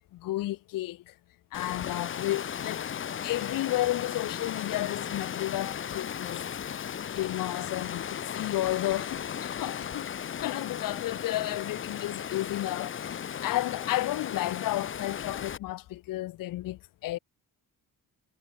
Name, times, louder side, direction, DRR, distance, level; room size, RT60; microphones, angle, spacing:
voice 1, 0.1-1.1 1.5-2.9 3.2-6.4 6.8-10.1 10.4-17.2, left 16 dB, 70° left, 0.6 m, -32 dB
Water, 1.5-15.6, left 8 dB, 35° left, 0.7 m, -36 dB
wide cardioid pair, 165°, 34 cm